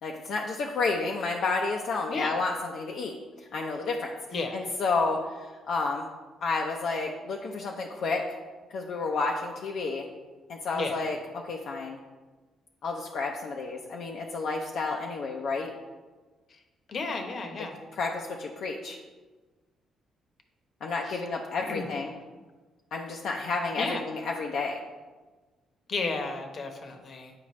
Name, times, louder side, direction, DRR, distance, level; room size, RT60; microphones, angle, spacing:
voice 1, 0.0-3.1 3.5-4.1 4.5-6.1 6.4-8.2 8.7-10.1 10.5-12.0 12.8-15.7 17.9-19.0 20.8-22.1 22.9-24.8, left 3 dB, 70° left, 0 dB, 0.6 m, -31 dB
voice 2, 16.9-17.7 21.1-21.2 21.7-21.9 23.8-24.0 25.9-27.3, left 3 dB, 50° left, 5 dB, 0.9 m, -33 dB
8.5 x 4.8 x 3.1 m, 1.3 s
cardioid pair, 90°, 0 cm